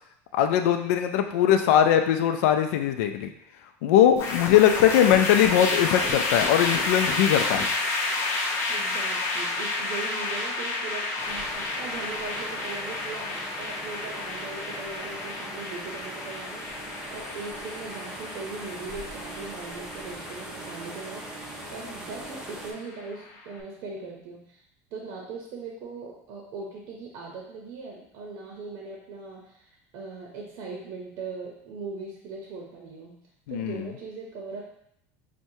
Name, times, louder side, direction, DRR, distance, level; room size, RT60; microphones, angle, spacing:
voice 1, 0.3-3.3 3.8-7.6 33.5-33.9, left 10 dB, 85° left, 7 dB, 0.4 m, -21 dB
sound 1, 4.2-23.4, left 3 dB, 35° left, 0.6 m, -31 dB
voice 2, 4.6-5.3 8.7-24.6 24.9-34.7, right 4 dB, 50° right, -1 dB, 0.7 m, -40 dB
sound 2, 11.2-22.7, right 1 dB, 10° right, 0.5 m, -41 dB
6.0 x 2.2 x 2.7 m, 0.75 s
cardioid pair, 165°, 8 cm